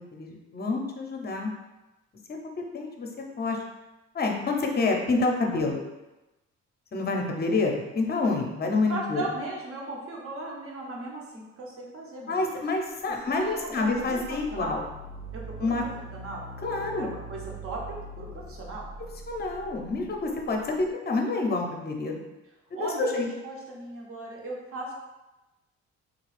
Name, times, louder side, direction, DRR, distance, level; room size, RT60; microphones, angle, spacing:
voice 1, 0.0-1.5 2.6-3.1 3.4-3.6 4.1-5.8 6.9-9.2 12.3-14.9 15.6-15.8 16.6-17.1 19.3-22.2 22.7-23.3, left 3 dB, 30° left, 2 dB, 0.7 m, -28 dB
voice 2, 8.9-12.3 13.1-13.2 13.5-14.8 15.3-16.4 16.7-18.9 22.7-24.9, right 2 dB, 45° right, -2 dB, 1.0 m, -37 dB
sound 1, 12.9-20.9, right 2 dB, 90° right, 0.5 m, -43 dB
3.8 x 2.3 x 3.2 m, 1.0 s
cardioid pair, 90°, 30 cm